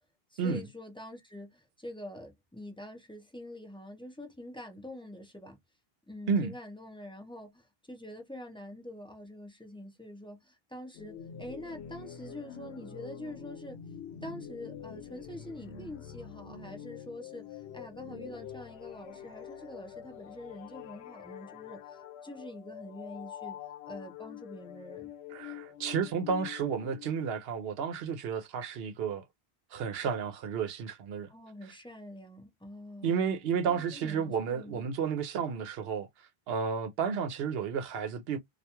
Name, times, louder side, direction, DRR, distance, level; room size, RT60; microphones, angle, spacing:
voice 1, 0.3-5.6 6.1-13.8 14.2-23.6 23.9-25.1 31.3-33.1 33.7-34.8, left 1 dB, 5° left, 0.5 m, -45 dB
sound 1, 10.9-27.1, left 8 dB, 85° left, 0.8 m, -46 dB
voice 2, 25.3-29.2 29.7-31.3 33.0-36.1 36.5-38.4, right 6 dB, 75° right, 0.8 m, -32 dB
2.3 x 2.2 x 2.8 m
omnidirectional pair, 1.0 m